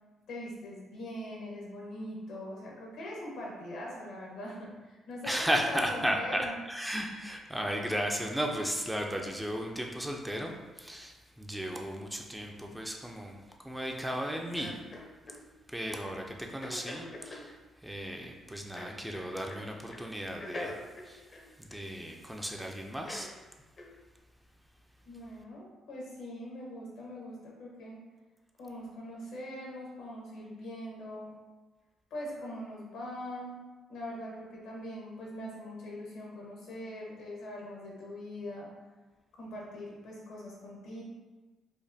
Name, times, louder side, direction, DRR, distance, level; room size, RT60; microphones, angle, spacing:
voice 1, 0.3-6.5 25.0-28.0 28.6-31.3 32.1-33.6 33.9-38.7 39.3-41.0, left 1 dB, 85° left, -4 dB, 1.2 m, -42 dB
voice 2, 5.2-13.4 13.6-14.8 15.7-17.5 17.8-20.7 21.0-21.2 21.6-23.3, equal, 5° right, 1 dB, 0.4 m, -35 dB
sound 1, 14.6-15.4 16.6-17.5 18.8-19.6 19.9-20.1 20.4-22.2 23.1-23.3 23.8-24.0, left 2 dB, 40° left, 0.6 m, -43 dB
5.0 x 2.1 x 2.7 m, 1.2 s
cardioid pair, 90°, 0 cm